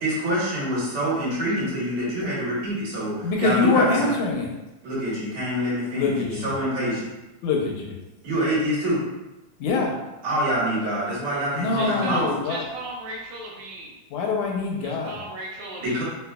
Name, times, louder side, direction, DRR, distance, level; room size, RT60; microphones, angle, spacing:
voice 1, 0.0-4.1 4.8-7.1 8.2-9.0 10.2-12.3 15.8-16.0, equal, 70° right, -8 dB, 2.4 m, -26 dB
voice 2, 3.2-4.5 5.9-6.5 7.4-8.0 9.6-10.0 11.6-12.6 14.1-15.2, left 4 dB, 80° left, 0 dB, 1.9 m, -24 dB
voice 3, 11.7-13.9 14.8-16.0, right 2 dB, 90° right, -2 dB, 2.1 m, -36 dB
5.3 x 2.2 x 2.2 m, 1.0 s
omnidirectional pair, 3.5 m